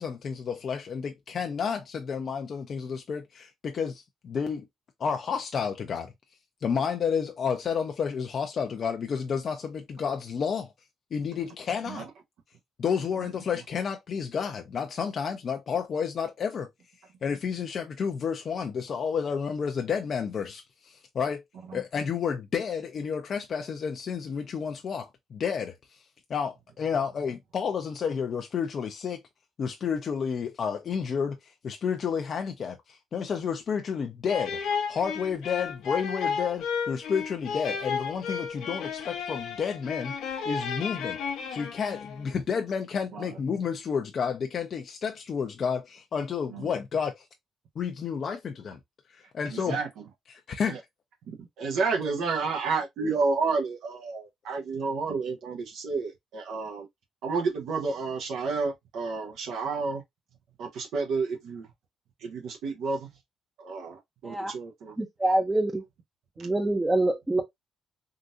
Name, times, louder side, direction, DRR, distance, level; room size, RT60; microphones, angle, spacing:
voice 1, 0.0-4.7 5.0-6.1 6.6-10.7 11.1-12.1 12.8-16.7 17.2-21.4 21.7-25.8 26.3-29.2 29.6-34.6 34.9-40.1 40.5-41.2 41.5-47.2 47.8-48.8 49.1-49.8 50.3-50.8, left 6 dB, 55° left, 0.6 m, -31 dB
sound 1, 34.3-42.3, left 6 dB, 85° left, 0.8 m, -33 dB
voice 2, 49.5-49.9 50.7-50.8 51.3-56.9 57.2-60.0 60.6-61.7 62.2-63.1 63.6-64.9, right 4 dB, 80° right, 0.9 m, -30 dB
voice 3, 65.0-65.8 66.4-67.4, right 1 dB, 15° right, 0.6 m, -25 dB
3.8 x 2.6 x 2.5 m
cardioid pair, 90°, 0 cm